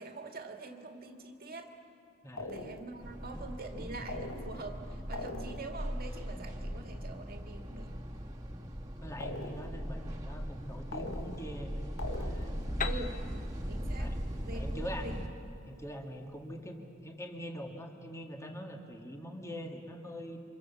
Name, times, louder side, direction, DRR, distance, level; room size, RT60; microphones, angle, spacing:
voice 1, 0.0-1.7 2.4-8.0 12.8-13.2 13.7-14.1 14.4-15.2, right 2 dB, 45° right, 4 dB, 2.1 m, -44 dB
sound 1, 2.4-3.1 4.1-4.8 5.1-5.9 9.2-9.9 10.9-11.6 12.0-12.7, left 2 dB, 70° left, 1.8 m, -42 dB
sound 2, 3.0-15.3, equal, 20° right, 2.1 m, -39 dB
voice 2, 9.0-11.8 12.1-12.6 13.6-13.7 14.0-14.2 14.5-15.1 15.7-20.4, equal, 15° left, 3 dB, 2.1 m, -43 dB
Piano, 12.8-16.5, left 5 dB, 40° left, 1.1 m, -43 dB
29.5 x 25.5 x 7.2 m, 2.6 s
head